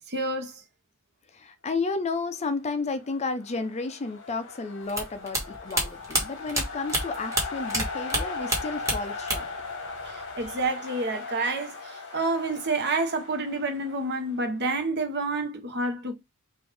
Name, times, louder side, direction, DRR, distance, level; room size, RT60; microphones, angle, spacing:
voice 1, 0.1-0.6 10.1-16.1, right 2 dB, 50° right, 0.9 m, -29 dB
voice 2, 1.3-9.5, left 3 dB, 30° left, 0.5 m, -32 dB
sound 1, 2.8-14.7, left 4 dB, 55° left, 1.2 m, -39 dB
sound 2, 4.9-9.6 9.9-10.6, right 1 dB, 15° right, 1.6 m, -28 dB
5.1 x 2.6 x 3.4 m
head